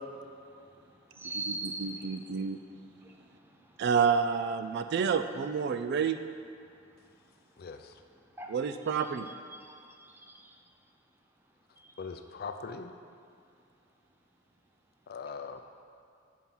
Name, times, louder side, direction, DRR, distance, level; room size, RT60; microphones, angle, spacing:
voice 1, 0.2-3.8 4.7-4.9 8.4-10.6 11.8-11.9, right 2 dB, 10° right, 1 dB, 0.6 m, -44 dB
voice 2, 1.8-2.6 3.8-6.2 8.5-9.3, right 6 dB, 55° right, 9 dB, 0.3 m, -29 dB
voice 3, 7.6-8.0 12.0-12.9 15.1-15.6, left 5 dB, 50° left, 7 dB, 0.4 m, -41 dB
7.4 x 4.5 x 5.5 m, 2.5 s
head